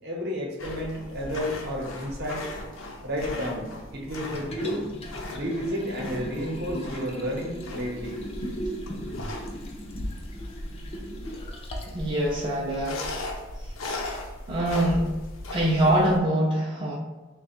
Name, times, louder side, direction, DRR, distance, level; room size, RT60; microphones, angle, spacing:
voice 1, 0.0-2.5 3.0-4.9 5.3-8.2, equal, 55° right, -1 dB, 0.9 m, -31 dB
sound 1, 0.6-16.2, left 1 dB, 85° left, 0.7 m, -38 dB
Liquid, 4.3-12.0 12.4-12.5, equal, 30° left, 0.5 m, -37 dB
voice 2, 11.9-13.0 13.6-13.8 14.5-15.1 15.5-17.0, right 1 dB, 25° right, -5 dB, 0.5 m, -24 dB
3.2 x 2.3 x 4.3 m, 1.2 s
head